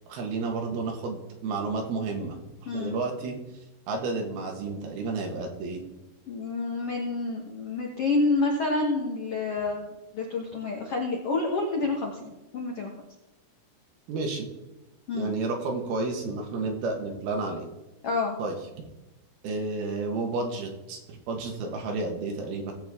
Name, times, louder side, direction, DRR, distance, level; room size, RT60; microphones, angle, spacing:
voice 1, 0.1-2.4 2.6-3.4 3.9-5.8 14.1-14.5 15.1-17.7 18.4-18.5 19.4-22.7, right 3 dB, 70° right, 2 dB, 3.3 m, -31 dB
voice 2, 6.3-12.9 15.1-15.3 18.0-18.4, left 3 dB, 70° left, 0 dB, 1.4 m, -28 dB
18.5 x 7.9 x 3.6 m, 1.0 s
omnidirectional pair, 4.8 m